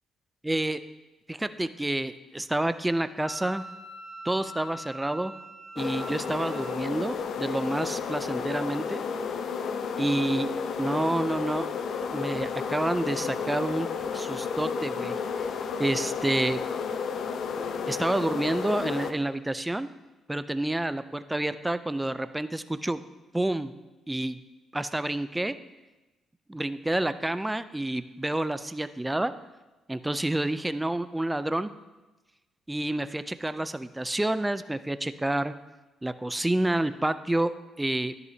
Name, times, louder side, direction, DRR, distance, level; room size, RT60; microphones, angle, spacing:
voice 1, 0.4-0.8 1.3-3.6 4.2-5.3 5.8-9.0 10.0-10.5 10.8-11.7 12.1-13.9 14.1-15.5 15.8-16.6 17.9-19.9 20.3-23.0 23.3-23.7 24.1-24.4 24.7-25.5 26.5-29.3 29.9-31.7 32.7-35.5 36.0-37.5 37.8-38.1, right 1 dB, 10° right, 12 dB, 0.4 m, -28 dB
Wind instrument woodwind instrument, 3.2-6.9, right 1 dB, 40° left, 1.2 m, -43 dB
sound 1, 5.8-19.1, left 6 dB, 65° left, 0.7 m, -32 dB
11.0 x 10.5 x 2.8 m, 1.1 s
cardioid pair, 90°, 0 cm